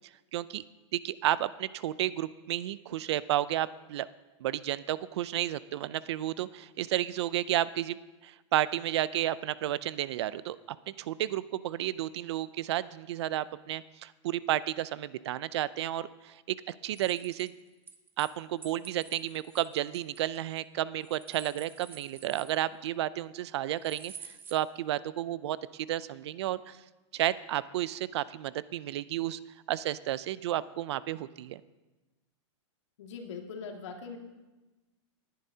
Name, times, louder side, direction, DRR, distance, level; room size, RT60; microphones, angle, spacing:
voice 1, 0.3-0.6 0.9-4.1 4.4-8.0 8.2-10.6 10.9-17.5 18.2-26.8 27.1-29.4 29.7-31.6, right 13 dB, 60° right, 17 dB, 0.4 m, -32 dB
sound 1, 16.9-18.3 18.6-20.6 21.0-22.9 23.8-24.5, right 6 dB, 10° right, 0.6 m, -50 dB
voice 2, 33.0-34.2, left 5 dB, 65° left, 2 dB, 2.1 m, -41 dB
19.0 x 10.5 x 2.8 m, 1.1 s
supercardioid pair, 155°, 16 cm